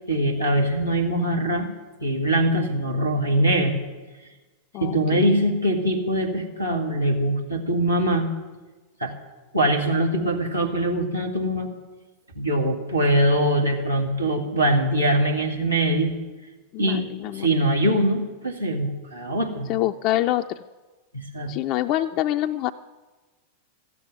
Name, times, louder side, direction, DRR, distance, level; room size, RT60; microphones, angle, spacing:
voice 1, 0.1-1.7 2.0-3.8 4.8-8.3 9.0-9.1 9.5-11.7 12.4-16.1 16.8-17.1 17.3-19.7 21.1-21.5, right 1 dB, 90° right, 3 dB, 2.0 m, -22 dB
voice 2, 4.7-5.2 16.7-17.5 19.7-20.6 21.5-22.7, left 13 dB, 40° left, 6 dB, 0.4 m, -25 dB
14.0 x 8.5 x 9.1 m, 1.2 s
figure-of-eight pair, 90°, 0 cm